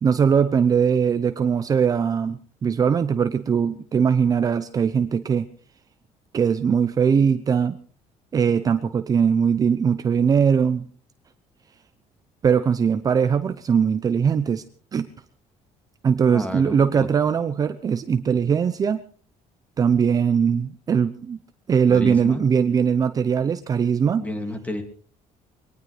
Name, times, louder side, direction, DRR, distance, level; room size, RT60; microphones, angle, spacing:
voice 1, 0.0-5.5 6.3-7.8 8.3-10.9 12.4-14.6 14.9-15.1 16.0-19.0 19.8-21.4 21.7-24.2, right 7 dB, 30° right, 10 dB, 0.7 m, -20 dB
voice 2, 16.3-17.1 21.9-22.4 24.2-24.8, left 1 dB, 10° left, 6 dB, 2.4 m, -31 dB
23.0 x 19.0 x 3.3 m, 0.41 s
cardioid pair, 160°, 13 cm